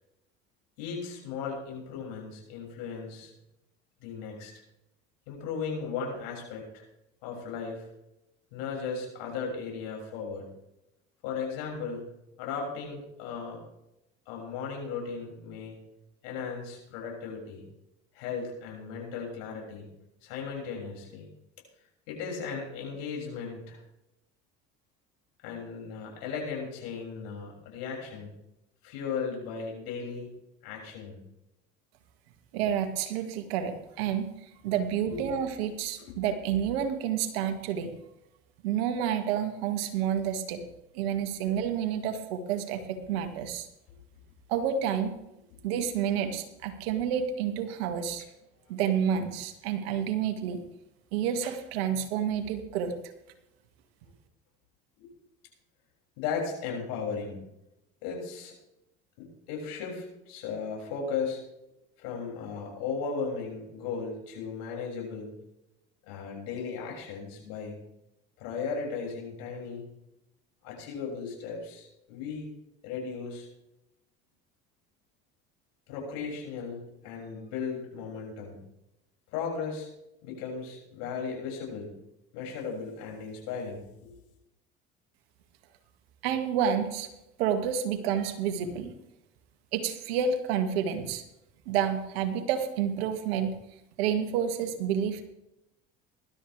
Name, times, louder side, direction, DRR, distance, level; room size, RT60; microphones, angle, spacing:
voice 1, 0.8-3.3 4.0-4.5 5.3-6.8 7.2-7.9 8.5-10.4 11.2-12.0 12.4-13.6 14.3-15.8 16.2-17.6 18.1-19.9 20.2-21.3 22.1-23.8 25.4-28.3 28.8-30.3 30.6-31.2 35.0-35.3 36.0-36.1 55.0-55.1 56.2-57.4 58.0-58.5 59.2-61.4 62.0-65.4 66.0-67.8 68.4-69.9 70.6-72.5 72.8-73.5 75.9-78.6 79.3-79.9 80.2-81.9 82.3-84.1, left 5 dB, 75° left, -1 dB, 6.8 m, -36 dB
voice 2, 32.5-34.3 34.6-37.9 38.6-40.6 40.9-43.7 44.5-45.2 45.6-48.2 48.7-50.6 51.1-52.9 86.2-87.1 87.4-88.9 89.7-91.2 91.7-93.5 94.0-95.2, right 8 dB, 80° right, 6 dB, 2.2 m, -29 dB
20.0 x 13.0 x 3.5 m, 0.86 s
hypercardioid pair, 75°, 30 cm